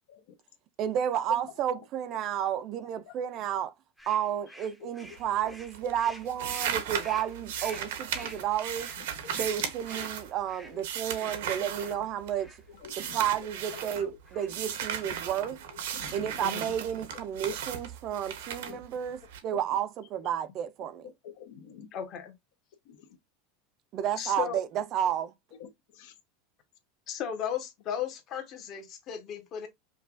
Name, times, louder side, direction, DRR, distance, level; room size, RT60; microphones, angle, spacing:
voice 1, 0.8-3.7 4.1-8.9 9.3-12.5 13.0-15.6 16.1-21.1 23.9-25.3, right 10 dB, 35° right, 0.4 m, -31 dB
sound 1, 4.0-12.0 12.4-12.6 13.0-13.2 13.6-13.9 14.2-14.7, equal, ahead, 0.7 m, -50 dB
voice 2, 4.8-5.1 5.4-5.5 8.2-8.3 9.2-9.7 10.0-10.1 10.7-10.8 11.2-11.3 11.6-12.1 12.7-13.2 13.7-14.5 15.0-15.1 15.4-15.5 15.9-16.4 17.1-17.5 18.7-18.8 19.5-19.6 21.0-21.9 22.9-23.1 25.6-26.1, left 8 dB, 65° left, 0.8 m, -48 dB
sound 2, 5.0-5.5 5.7-12.5 12.8-14.0 14.5-19.4, right 8 dB, 80° right, 0.8 m, -36 dB
voice 3, 16.4-16.7 21.9-22.3 24.2-24.6 27.1-29.7, left 9 dB, 35° left, 1.1 m, -35 dB
5.3 x 2.3 x 2.4 m
supercardioid pair, 155°, 0 cm